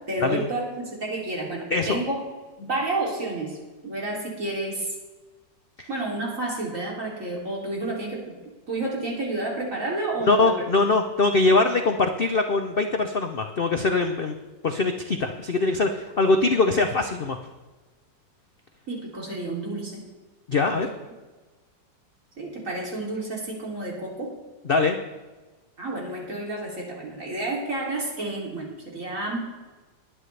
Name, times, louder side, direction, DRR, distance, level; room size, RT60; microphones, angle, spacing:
voice 1, 0.1-2.2 2.6-3.6 3.8-4.9 5.9-8.4 8.7-10.5 10.8-10.9 18.9-20.0 20.7-20.8 22.4-24.3 25.8-29.5, right 2 dB, 45° right, -3 dB, 3.3 m, -30 dB
voice 2, 1.7-2.0 5.8-5.9 10.2-14.3 14.6-17.4 20.5-20.9 24.7-25.0, left 3 dB, 70° left, 5 dB, 0.5 m, -22 dB
20.5 x 9.4 x 3.3 m, 1.3 s
omnidirectional pair, 2.0 m